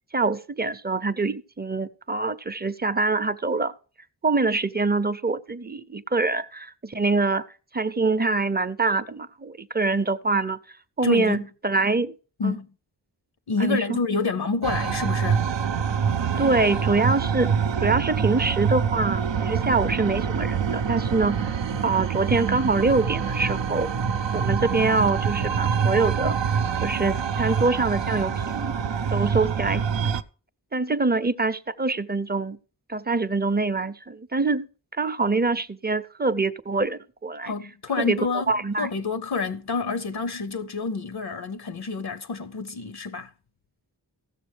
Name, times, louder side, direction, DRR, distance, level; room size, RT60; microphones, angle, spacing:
voice 1, 0.1-3.7 4.2-7.5 7.7-10.6 11.0-12.1 12.4-12.6 13.6-14.0 16.4-17.5 17.8-21.6 21.8-23.9 24.3-26.4 26.8-28.7 29.1-30.2 30.7-32.6 32.9-34.7 35.0-37.5 38.0-38.2 38.5-38.9, right 3 dB, 25° right, 0.5 m, -24 dB
voice 2, 11.0-11.5 12.4-12.7 13.5-15.5 37.4-43.3, left 4 dB, 60° left, 0.6 m, -28 dB
sound 1, 14.6-30.2, right 6 dB, 85° right, 0.6 m, -25 dB
16.0 x 6.8 x 3.2 m
wide cardioid pair, 55°, 43 cm